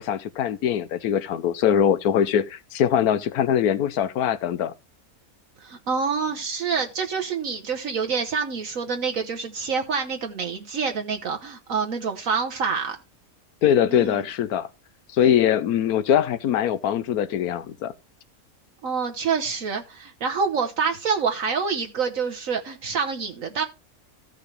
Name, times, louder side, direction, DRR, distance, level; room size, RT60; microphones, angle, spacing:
voice 1, 0.0-4.7 13.6-14.7 15.1-17.9, left 9 dB, 85° left, 1.3 m, -22 dB
voice 2, 5.6-13.0 13.9-14.2 18.8-23.6, right 5 dB, 65° right, 1.4 m, -27 dB
15.0 x 5.9 x 3.2 m
omnidirectional pair, 1.5 m